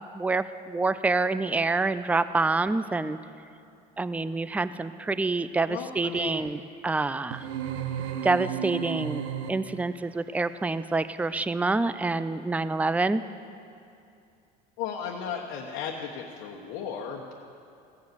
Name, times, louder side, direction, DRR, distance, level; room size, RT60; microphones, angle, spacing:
voice 1, 0.0-3.2 4.0-7.5 8.2-9.2 9.5-13.2, right 3 dB, 5° right, 14 dB, 0.4 m, -27 dB
voice 2, 5.7-6.4 14.8-17.3, left 7 dB, 70° left, -2 dB, 1.2 m, -35 dB
sound 1, 7.3-9.9, right 9 dB, 75° right, 0.9 m, -33 dB
16.0 x 7.9 x 7.0 m, 2.5 s
supercardioid pair, 90°, 21 cm